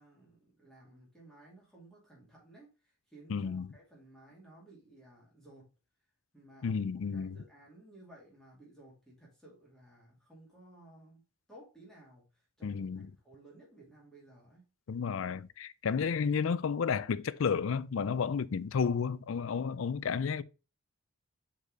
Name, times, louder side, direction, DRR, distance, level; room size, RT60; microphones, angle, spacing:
voice 1, 0.0-5.7 6.3-6.8 7.1-11.2 11.5-14.6, right 1 dB, ahead, 2.2 m, -57 dB
voice 2, 3.3-3.7 6.6-7.4 12.6-13.1 14.9-20.4, left 6 dB, 70° left, 0.4 m, -32 dB
5.2 x 4.1 x 4.7 m
head